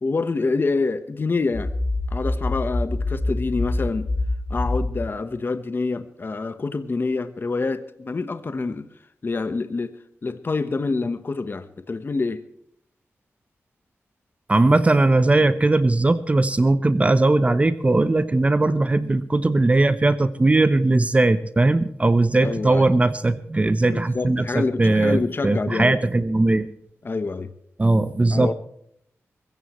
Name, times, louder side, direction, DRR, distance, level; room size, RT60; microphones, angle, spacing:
voice 1, 0.0-1.7 2.1-4.1 4.5-8.9 9.2-10.0 10.2-12.4 22.4-22.9 23.9-26.0 27.0-27.5 28.3-28.5, left 3 dB, 45° left, 10 dB, 1.1 m, -26 dB
sound 1, 1.5-5.1, left 2 dB, 20° left, 1.3 m, -25 dB
voice 2, 14.5-25.2 25.4-26.7 27.8-28.5, right 2 dB, 25° right, 13 dB, 0.9 m, -19 dB
23.0 x 15.0 x 3.1 m, 0.69 s
wide cardioid pair, 90°, 5 cm